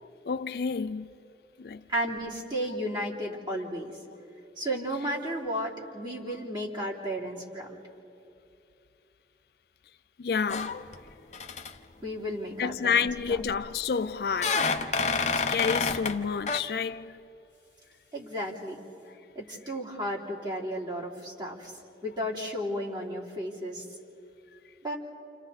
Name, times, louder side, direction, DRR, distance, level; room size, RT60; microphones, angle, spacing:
voice 1, 0.3-1.1 1.6-1.8 10.2-10.8 12.6-14.7 15.3-17.2, left 6 dB, 60° left, 0.4 m, -29 dB
voice 2, 1.9-3.9 4.6-7.8 12.0-12.9 18.1-18.8 19.3-21.7 22.0-23.8 24.8-25.0, equal, 25° right, 3.3 m, -33 dB
sound 1, 10.5-11.1 11.3-11.7 13.1-13.6 14.3-16.2 16.5-16.6, left 4 dB, 40° left, 0.9 m, -29 dB
29.5 x 28.5 x 4.1 m
head